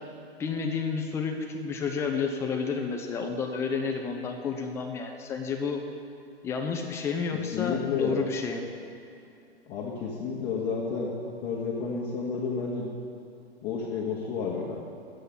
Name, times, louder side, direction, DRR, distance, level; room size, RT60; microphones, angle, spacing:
voice 1, 0.4-5.8 6.4-8.6, left 5 dB, 10° left, 3 dB, 0.5 m, -30 dB
voice 2, 7.5-8.2 9.7-12.9 13.6-14.8, left 5 dB, 25° left, -4 dB, 1.3 m, -31 dB
7.7 x 7.6 x 8.4 m, 2.7 s
figure-of-eight pair, 115°, 32 cm